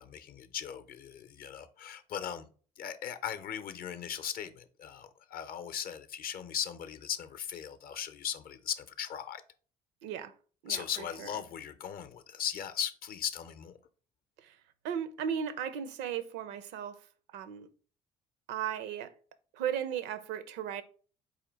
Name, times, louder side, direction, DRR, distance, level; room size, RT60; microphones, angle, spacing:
voice 1, 0.0-2.5 2.8-9.4 10.7-13.8, left 9 dB, 50° left, 0.6 m, -38 dB
voice 2, 10.0-10.3 10.6-10.8 11.2-11.3 14.4-14.6 14.8-17.0 17.3-17.7 18.5-19.1 19.5-20.8, right 8 dB, 65° right, 0.5 m, -36 dB
4.3 x 2.8 x 3.9 m
hypercardioid pair, 50°, 19 cm